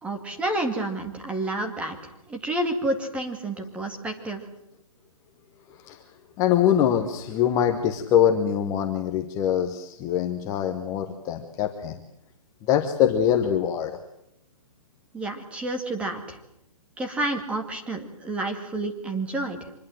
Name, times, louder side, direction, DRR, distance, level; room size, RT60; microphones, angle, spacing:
voice 1, 0.0-2.0 2.3-4.4 15.1-16.4 17.0-19.6, right 2 dB, 5° right, 4 dB, 2.2 m, -29 dB
voice 2, 5.7-6.0 6.4-12.0 12.6-14.0, left 9 dB, 15° left, 5 dB, 1.2 m, -23 dB
25.0 x 21.0 x 7.8 m, 0.82 s
hypercardioid pair, 160°, 18 cm